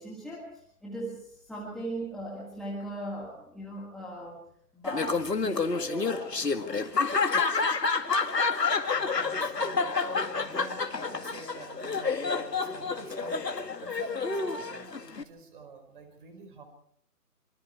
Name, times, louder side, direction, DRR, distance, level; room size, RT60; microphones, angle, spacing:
voice 1, 0.0-4.4 4.7-6.9, right 1 dB, ahead, -6 dB, 1.7 m, -39 dB
Laughter, 4.9-15.2, left 4 dB, 85° left, 2.3 m, -29 dB
voice 2, 8.9-9.9 10.4-16.6, right 5 dB, 30° right, 7 dB, 5.0 m, -49 dB
26.0 x 24.5 x 4.6 m, 0.67 s
figure-of-eight pair, 155°, 48 cm